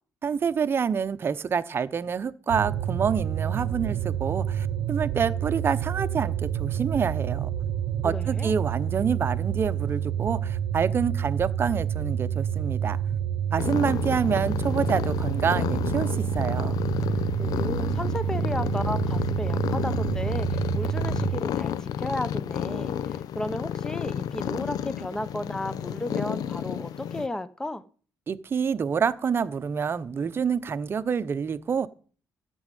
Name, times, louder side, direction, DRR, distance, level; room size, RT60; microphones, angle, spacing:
voice 1, 0.2-7.5 8.0-13.0 13.5-16.8 28.3-31.9, right 6 dB, 35° right, 0.8 m, -27 dB
sound 1, 2.5-21.4, right 9 dB, 80° right, 0.8 m, -28 dB
voice 2, 8.0-8.5 17.4-27.8, left 1 dB, 10° left, 0.9 m, -34 dB
sound 2, 13.6-27.3, left 9 dB, 70° left, 0.6 m, -31 dB
14.0 x 6.2 x 9.2 m
cardioid pair, 135°, 7 cm